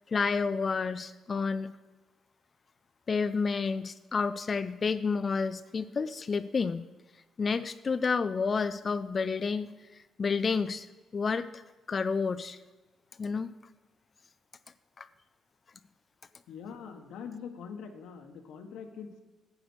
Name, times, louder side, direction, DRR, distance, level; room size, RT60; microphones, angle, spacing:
voice 1, 0.1-1.7 3.1-6.9 7.4-10.9 11.1-11.6 11.9-12.6 13.2-13.5 15.0-15.1, left 5 dB, 40° left, 12 dB, 0.4 m, -30 dB
voice 2, 16.5-19.2, left 6 dB, 85° left, 5 dB, 1.3 m, -43 dB
9.9 x 8.2 x 6.2 m, 1.2 s
cardioid pair, 90°, 0 cm